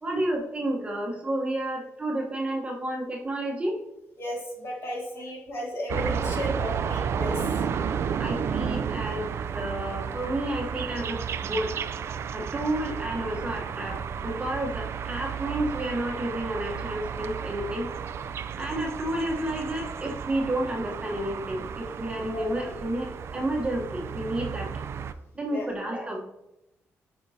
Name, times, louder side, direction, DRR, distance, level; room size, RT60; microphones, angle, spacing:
voice 1, 0.0-3.8 8.2-11.7 12.3-17.9 18.6-24.7 25.3-26.2, right 1 dB, 20° right, 0 dB, 1.1 m, -31 dB
voice 2, 4.2-7.6 22.3-22.4 25.5-25.7, left 1 dB, 55° left, -2 dB, 2.1 m, -34 dB
sound 1, 5.9-25.1, right 7 dB, 55° right, 0.4 m, -32 dB
9.4 x 4.5 x 2.8 m, 0.90 s
cardioid pair, 115°, 5 cm